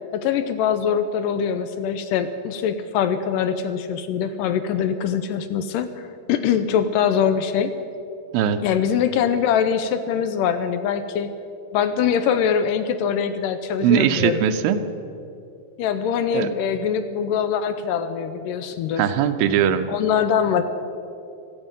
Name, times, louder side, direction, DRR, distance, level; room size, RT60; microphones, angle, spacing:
voice 1, 0.1-7.7 8.6-11.3 11.7-14.5 15.8-19.0 19.9-20.6, left 8 dB, 80° left, 10 dB, 2.1 m, -23 dB
voice 2, 13.8-14.8 16.3-16.5 19.0-19.9, right 9 dB, 85° right, 9 dB, 2.5 m, -20 dB
16.5 x 14.0 x 5.4 m, 2.7 s
omnidirectional pair, 4.1 m